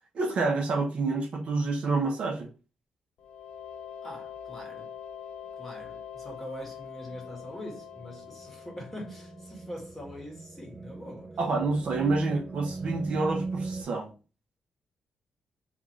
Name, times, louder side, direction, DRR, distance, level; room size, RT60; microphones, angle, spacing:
voice 1, 0.1-2.5 11.4-14.1, right 3 dB, 65° right, 0.9 m, -28 dB
sound 1, 3.2-9.8, left 8 dB, 90° left, 0.4 m, -44 dB
voice 2, 4.0-4.9 5.6-11.4 11.9-12.1, equal, 10° left, 1.5 m, -43 dB
sound 2, 7.1-13.8, right 3 dB, 30° right, 0.6 m, -40 dB
3.7 x 2.5 x 3.1 m
cardioid pair, 115°, 2 cm